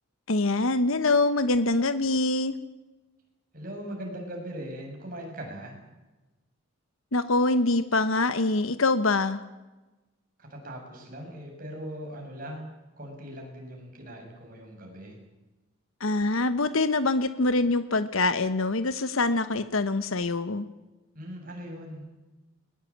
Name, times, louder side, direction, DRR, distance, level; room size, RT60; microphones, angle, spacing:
voice 1, 0.3-2.5 7.1-9.4 16.0-20.7, left 2 dB, 70° left, 12 dB, 1.1 m, -24 dB
voice 2, 3.5-5.7 10.4-15.2 21.1-22.1, equal, 40° right, 1 dB, 7.2 m, -40 dB
21.5 x 20.5 x 8.7 m, 1.1 s
head